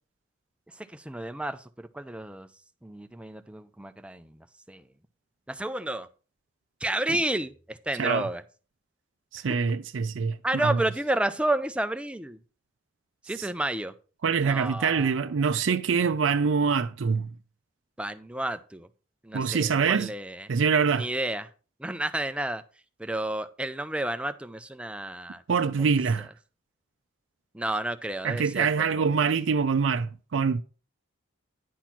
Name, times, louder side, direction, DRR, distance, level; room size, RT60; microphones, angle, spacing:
voice 1, 0.7-2.5 2.8-4.9 5.5-6.1 6.8-8.4 10.4-12.4 13.3-13.9 14.4-15.1 18.0-18.9 19.2-20.5 20.9-21.5 21.8-22.6 23.0-25.4 25.7-25.8 27.5-29.2, right 1 dB, 5° right, 0.5 m, -31 dB
voice 2, 9.3-10.8 13.4-13.5 14.2-17.3 19.3-20.1 20.5-21.1 25.5-26.3 28.2-30.6, right 5 dB, 70° right, 0.4 m, -25 dB
10.0 x 4.3 x 5.9 m
head